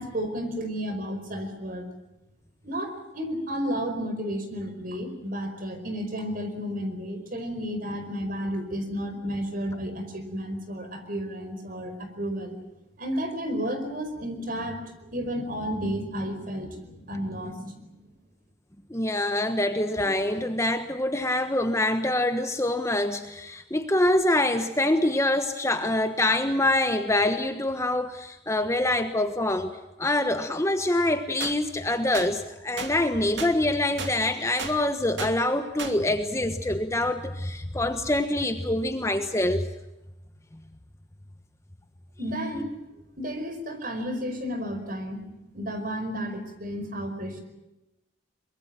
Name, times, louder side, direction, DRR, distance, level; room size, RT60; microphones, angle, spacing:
voice 1, 0.0-1.8 2.6-12.6 13.0-18.0 42.2-42.7 43.2-47.4, equal, 45° right, 7 dB, 5.0 m, -32 dB
voice 2, 18.9-29.7 30.0-39.7, left 1 dB, 15° left, 7 dB, 1.3 m, -25 dB
sound 1, 31.4-31.6 32.1-32.3 32.8-32.9 33.4-33.5 34.0-34.1 34.6-34.7 35.2-35.3 35.8-35.9, right 5 dB, 65° right, 2.6 m, -34 dB
24.0 x 22.0 x 7.6 m, 0.98 s
head